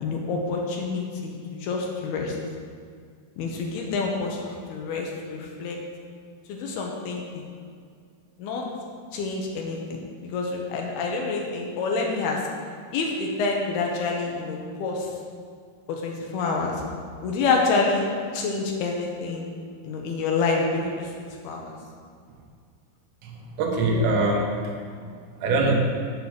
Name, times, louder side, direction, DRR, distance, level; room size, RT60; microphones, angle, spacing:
voice 1, 0.0-1.4 1.6-2.4 3.4-5.8 6.5-7.4 8.4-8.7 9.1-12.4 12.9-15.1 15.9-16.8 17.2-18.1 18.3-19.5 19.8-21.1 21.4-21.7, left 4 dB, 70° left, 0 dB, 2.8 m, -27 dB
voice 2, 23.2-24.7 25.4-25.7, right 2 dB, 85° right, 0 dB, 3.6 m, -23 dB
8.4 x 7.6 x 6.6 m, 2.1 s
omnidirectional pair, 5.0 m